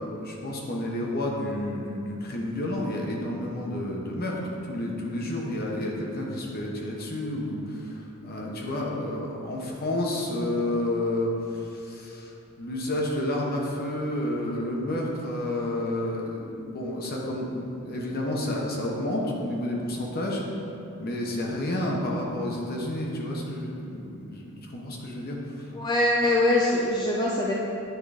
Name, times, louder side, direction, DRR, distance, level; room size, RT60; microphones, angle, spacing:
voice 1, 0.0-12.3 12.6-20.4 21.0-25.4, left 1 dB, 45° left, -2 dB, 1.1 m, -30 dB
voice 2, 25.7-27.5, left 1 dB, 20° left, -4 dB, 0.5 m, -23 dB
9.2 x 3.8 x 5.0 m, 2.8 s
head